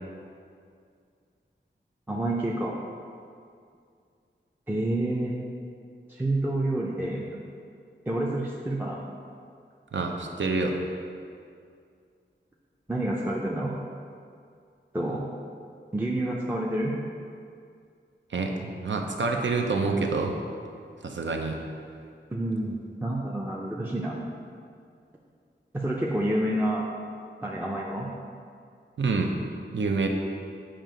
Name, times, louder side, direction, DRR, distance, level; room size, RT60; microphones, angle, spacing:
voice 1, 2.1-2.7 4.7-5.3 6.1-7.3 8.1-9.0 12.9-13.7 14.9-15.3 15.9-16.9 22.3-24.2 25.7-26.8 27.4-28.1, right 1 dB, 10° right, -3 dB, 0.5 m, -28 dB
voice 2, 9.9-10.8 18.3-20.3 21.0-21.6 29.0-29.3 29.7-30.1, right 3 dB, 75° right, 2 dB, 0.6 m, -27 dB
7.4 x 2.8 x 5.0 m, 2.3 s
wide cardioid pair, 80°, 19 cm